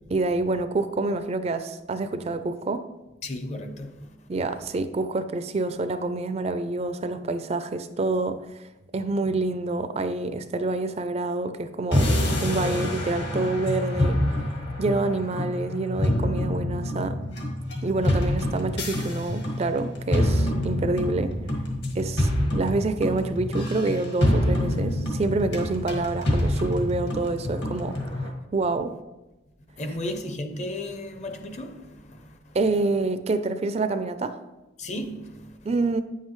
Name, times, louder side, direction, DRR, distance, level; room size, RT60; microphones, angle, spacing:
voice 1, 0.1-2.9 4.3-8.7 8.9-12.1 12.4-14.2 14.8-17.2 17.8-21.4 21.9-28.0 28.5-29.0 32.5-34.4 35.7-36.0, right 3 dB, 35° right, 0.4 m, -27 dB
voice 2, 3.2-4.1 29.8-32.6 34.8-35.5, left 1 dB, 35° left, 0.7 m, -34 dB
sound 1, 11.9-28.3, left 1 dB, 60° left, 1.8 m, -26 dB
9.4 x 7.4 x 3.1 m
head